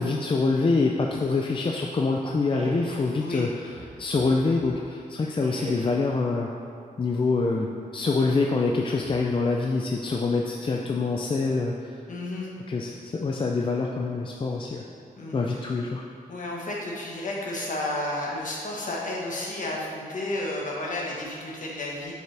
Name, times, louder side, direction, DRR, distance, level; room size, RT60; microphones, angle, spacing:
voice 1, 0.0-6.5 7.0-7.7 7.9-12.0 12.7-14.8 15.3-16.0, left 3 dB, 35° left, 0 dB, 0.4 m, -25 dB
sound 1, 2.5-3.2 3.7-4.9 5.4-6.2 8.1-8.6 9.0-9.7, right 3 dB, 40° right, 0.7 m, -42 dB
voice 2, 12.1-12.5 15.2-15.6 16.3-22.1, left 1 dB, 60° left, -3 dB, 1.4 m, -32 dB
7.4 x 5.6 x 3.4 m, 2.4 s
wide cardioid pair, 110°, 15 cm